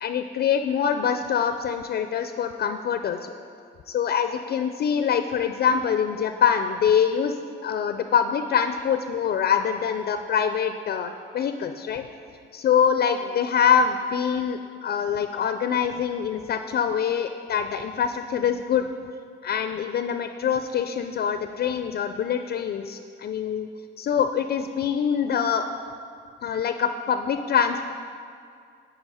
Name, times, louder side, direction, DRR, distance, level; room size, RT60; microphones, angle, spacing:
voice 1, 0.0-3.3 3.9-12.0 12.5-18.9 19.4-23.7 24.0-25.7 26.4-27.9, left 7 dB, 55° left, 8 dB, 0.4 m, -24 dB
9.4 x 4.8 x 4.8 m, 2.2 s
cardioid pair, 90°, 20 cm